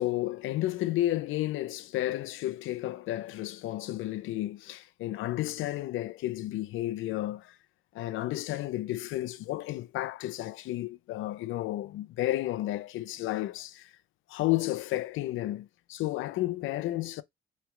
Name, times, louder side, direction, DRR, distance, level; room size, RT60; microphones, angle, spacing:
voice 1, 0.0-7.6 7.9-13.9 14.3-17.2, left 15 dB, 85° left, 0.5 m, -32 dB
3.3 x 3.2 x 4.8 m
cardioid pair, 90°, 20 cm